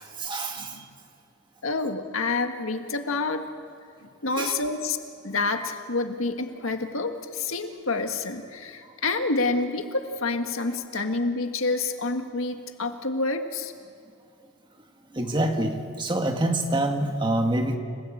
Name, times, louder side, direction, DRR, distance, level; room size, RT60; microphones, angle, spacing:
voice 1, 0.2-0.7 4.4-4.5 15.2-17.8, right 1 dB, 20° right, 4 dB, 1.8 m, -26 dB
voice 2, 1.6-3.4 4.2-5.0 5.2-13.7, left 3 dB, 85° left, 5 dB, 1.9 m, -28 dB
29.5 x 18.0 x 8.7 m, 2.2 s
head